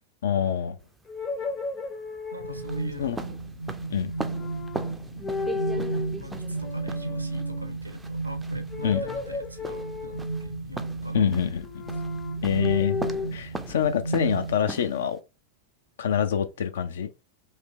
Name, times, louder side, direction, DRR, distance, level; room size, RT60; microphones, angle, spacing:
voice 1, 0.2-0.8 3.0-3.2 3.9-4.1 8.8-9.0 11.1-11.7 12.4-13.0 13.3-15.2 16.0-17.1, left 8 dB, 60° left, 0.5 m, -25 dB
sound 1, 0.8-15.2, right 3 dB, 10° right, 0.4 m, -40 dB
sound 2, 1.1-2.9 4.2-4.9 5.2-6.1 6.5-7.7 8.7-10.5 11.6-13.3, left 4 dB, 25° left, 0.7 m, -34 dB
voice 2, 2.3-3.4 5.7-11.3, left 1 dB, 85° right, 0.7 m, -43 dB
sound 3, 2.4-14.5, right 3 dB, 85° left, 1.1 m, -33 dB
3.3 x 2.8 x 3.2 m
figure-of-eight pair, 90°, 0 cm